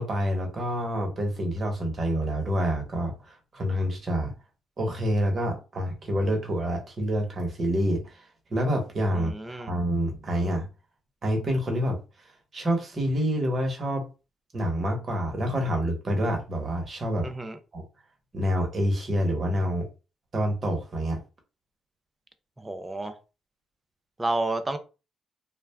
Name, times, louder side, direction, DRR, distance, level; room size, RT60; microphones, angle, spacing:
voice 1, 0.0-4.3 4.8-8.2 8.5-10.7 11.2-12.0 12.5-14.1 14.5-17.3 17.7-17.8 18.3-19.9 20.3-21.2, equal, 40° right, 1.0 m, -27 dB
voice 2, 9.1-9.7 17.2-17.6 22.6-23.1 24.2-24.8, right 2 dB, 15° right, 0.5 m, -30 dB
2.3 x 2.2 x 3.3 m
cardioid pair, 90°, 0 cm